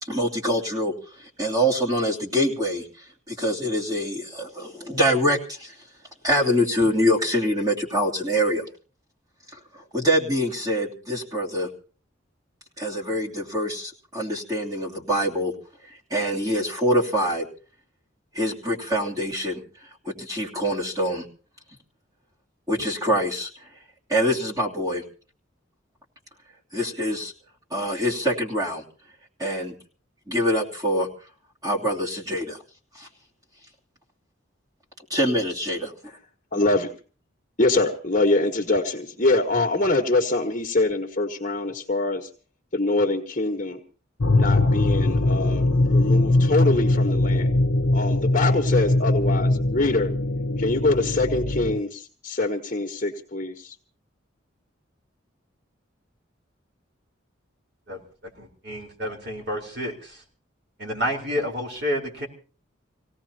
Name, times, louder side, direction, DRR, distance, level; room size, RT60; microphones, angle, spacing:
voice 1, 0.0-5.7 6.2-8.6 9.5-11.7 12.8-15.5 15.8-17.5 18.3-21.2 22.7-23.7 24.1-25.0 26.7-27.3 27.7-28.8 29.4-29.7 30.3-31.1 31.6-32.6 32.9-33.1 35.1-35.9, equal, 20° right, -4 dB, 3.0 m, -25 dB
voice 2, 36.5-36.9 37.6-42.3 42.7-43.8 44.4-47.5 47.9-50.1 50.6-53.7, left 2 dB, 35° left, 1 dB, 1.6 m, -24 dB
sound 1, 44.2-51.8, left 2 dB, 75° left, 1.0 m, -21 dB
voice 3, 58.4-60.2 60.8-62.3, equal, 55° right, 1 dB, 4.2 m, -29 dB
26.5 x 17.5 x 2.9 m, 0.39 s
head